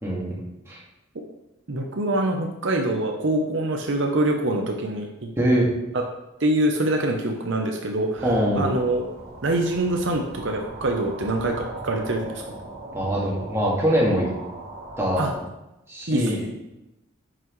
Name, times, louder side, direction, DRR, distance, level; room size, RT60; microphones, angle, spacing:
voice 1, 0.0-0.3 0.7-0.8 5.4-5.7 8.2-8.7 12.9-14.3 15.0-15.2 15.9-16.4, equal, 15° right, -5 dB, 1.9 m, -22 dB
voice 2, 1.7-5.3 6.4-8.2 8.6-9.0 9.4-12.6 15.2-15.3 16.1-16.2, right 1 dB, 65° right, 2 dB, 0.8 m, -24 dB
sound 1, 8.2-15.4, right 2 dB, 90° right, 2.0 m, -39 dB
9.2 x 6.0 x 3.2 m, 0.94 s
head